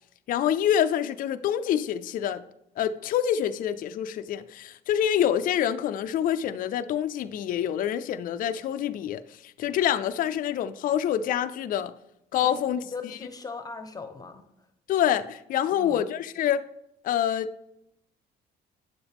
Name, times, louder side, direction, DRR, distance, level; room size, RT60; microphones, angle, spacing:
voice 1, 0.3-2.4 2.8-11.9 12.3-12.8 14.9-16.6 17.0-17.5, left 10 dB, 55° left, 0.4 m, -26 dB
voice 2, 12.4-14.7 15.7-16.1, left 4 dB, 20° left, 0.9 m, -40 dB
9.2 x 7.1 x 3.5 m
cardioid pair, 110°, 17 cm